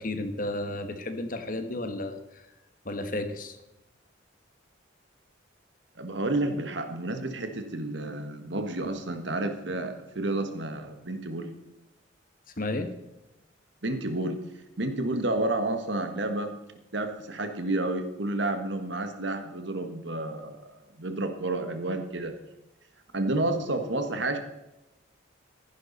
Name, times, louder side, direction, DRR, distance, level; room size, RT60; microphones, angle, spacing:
voice 1, 0.0-2.2 2.8-3.6 12.6-12.9, left 2 dB, 45° left, 8 dB, 1.3 m, -32 dB
voice 2, 5.9-11.5 13.8-14.4 14.8-16.5 16.9-22.3 23.1-24.4, right 2 dB, 65° right, 7 dB, 1.6 m, -30 dB
14.5 x 11.0 x 4.2 m, 0.94 s
head